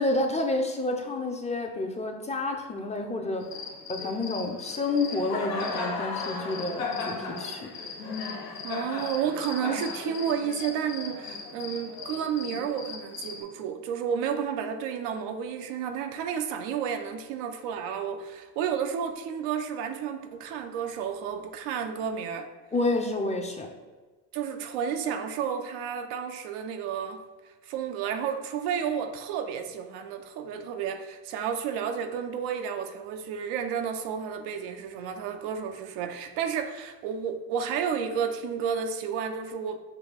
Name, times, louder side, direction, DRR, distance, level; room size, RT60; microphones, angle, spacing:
voice 1, 0.0-3.5 3.9-7.7 22.7-23.7, left 2 dB, 15° left, 3 dB, 0.5 m, -29 dB
Cricket, 3.4-13.4, left 4 dB, 90° left, 0.8 m, -36 dB
voice 2, 8.6-22.5 24.3-27.2 27.6-39.8, right 7 dB, 85° right, 6 dB, 0.6 m, -31 dB
6.0 x 2.3 x 3.4 m, 1.3 s
supercardioid pair, 85°, 41 cm